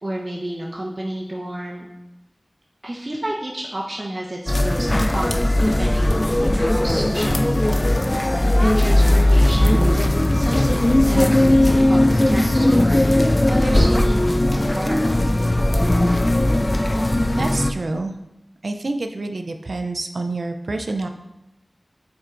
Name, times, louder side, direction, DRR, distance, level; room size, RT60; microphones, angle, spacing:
voice 1, 0.0-1.9 2.8-13.0 13.5-14.3 14.7-15.2, right 1 dB, 45° right, -3 dB, 0.8 m, -31 dB
sound 1, 4.5-17.7, left 1 dB, 35° left, 0.3 m, -18 dB
voice 2, 17.3-18.2 18.6-21.1, right 2 dB, 80° right, 6 dB, 0.4 m, -27 dB
9.4 x 4.3 x 2.5 m, 0.93 s
wide cardioid pair, 40°, 0 cm